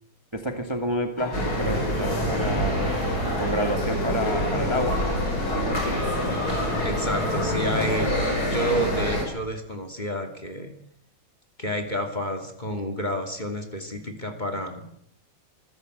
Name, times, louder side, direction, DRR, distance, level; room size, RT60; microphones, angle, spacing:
voice 1, 0.3-2.9 3.4-6.0, equal, 15° right, 5 dB, 2.0 m, -30 dB
sound 1, 1.2-8.2, left 3 dB, 70° left, 3.8 m, -35 dB
sound 2, 1.3-9.2, equal, 50° left, 6.5 m, -26 dB
voice 2, 6.8-8.2 8.4-10.7 11.6-14.8, equal, 20° left, 6 dB, 2.6 m, -30 dB
26.0 x 14.5 x 8.0 m, 0.75 s
omnidirectional pair, 2.2 m